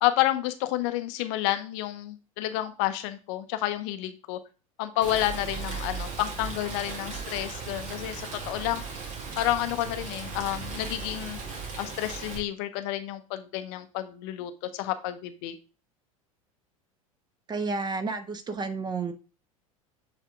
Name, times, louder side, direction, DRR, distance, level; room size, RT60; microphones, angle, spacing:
voice 1, 0.0-4.4 4.8-8.8 9.4-11.4 11.8-15.5, left 14 dB, 50° left, 10 dB, 0.7 m, -30 dB
Rain, 5.0-12.4, right 4 dB, 50° right, 1.9 m, -37 dB
voice 2, 17.5-19.1, right 4 dB, 25° right, 9 dB, 1.0 m, -31 dB
8.0 x 3.6 x 3.6 m, 0.33 s
figure-of-eight pair, 75°, 18 cm